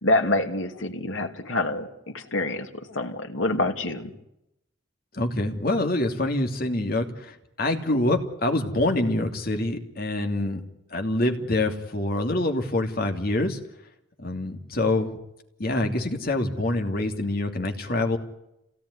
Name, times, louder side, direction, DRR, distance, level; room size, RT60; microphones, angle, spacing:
voice 1, 0.0-4.1, left 2 dB, 90° left, 5 dB, 2.6 m, -26 dB
voice 2, 5.1-10.6 10.9-13.6 14.2-15.2 15.6-18.2, left 2 dB, 50° left, 5 dB, 2.8 m, -26 dB
27.0 x 17.5 x 9.8 m, 0.86 s
head